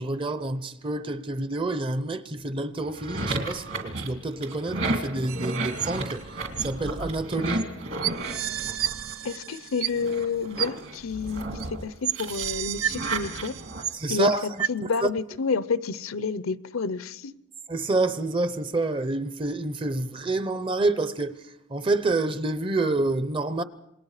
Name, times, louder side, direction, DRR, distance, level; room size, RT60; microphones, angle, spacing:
voice 1, 0.0-7.7 13.9-14.7 15.0-15.1 17.7-23.6, right 2 dB, 25° right, 0.7 m, -28 dB
sound 1, 2.8-9.5 9.9-13.8, right 2 dB, 60° right, 2.6 m, -33 dB
sound 2, 5.3-6.2 6.6-6.7 7.6-7.7 8.0-10.2 10.6-10.7 11.6-11.7 12.0-14.2 14.6-14.7, right 10 dB, 80° right, 0.8 m, -31 dB
voice 2, 9.2-11.4 11.7-13.6 14.1-14.3 14.7-17.3, left 4 dB, 70° left, 0.7 m, -29 dB
27.5 x 20.5 x 4.9 m
head